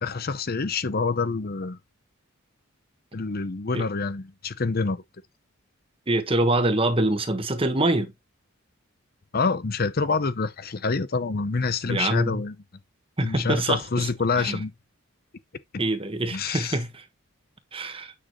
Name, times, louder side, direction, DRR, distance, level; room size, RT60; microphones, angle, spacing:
voice 1, 0.0-1.8 3.1-5.0 9.3-12.5 13.2-14.7 15.7-15.8 16.3-16.8, left 4 dB, 45° left, 0.7 m, -27 dB
voice 2, 6.1-8.1 11.9-12.4 13.2-14.1 14.4-14.6 15.8-17.0 17.7-18.1, right 2 dB, 25° right, 1.3 m, -25 dB
9.3 x 6.3 x 3.0 m
head